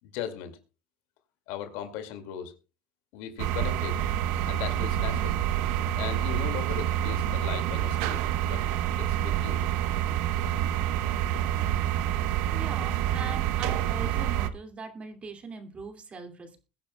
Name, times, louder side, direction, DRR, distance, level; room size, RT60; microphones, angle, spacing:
voice 1, 0.0-0.6 1.5-2.5 3.1-4.0 4.4-5.4 6.0-8.7 9.0-9.9, left 9 dB, 70° left, 8 dB, 2.3 m, -38 dB
sound 1, 3.4-14.5, right 11 dB, 70° right, 0.9 m, -27 dB
voice 2, 12.5-16.6, right 4 dB, 25° right, 6 dB, 2.5 m, -41 dB
22.0 x 9.8 x 2.3 m, 0.31 s
supercardioid pair, 120°, 4 cm